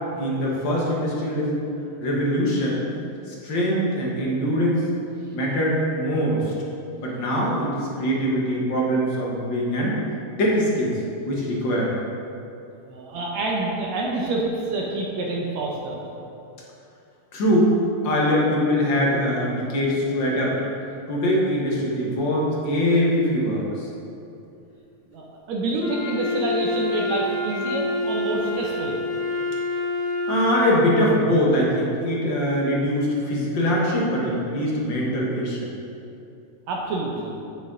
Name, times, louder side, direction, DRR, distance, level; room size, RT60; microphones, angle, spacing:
voice 1, 0.2-1.6 2.0-2.8 3.3-4.8 5.3-6.4 7.0-10.0 10.4-11.0 11.3-11.9 17.3-17.7 18.0-20.6 21.1-23.9 30.3-35.7, equal, 50° left, -3 dB, 1.7 m, -22 dB
voice 2, 12.9-16.0 25.1-29.0 36.7-37.4, right 2 dB, 75° right, -2 dB, 2.1 m, -27 dB
Wind instrument woodwind instrument, 25.8-30.9, left 2 dB, 70° left, 2.2 m, -27 dB
9.3 x 8.0 x 3.7 m, 2.7 s
omnidirectional pair, 3.3 m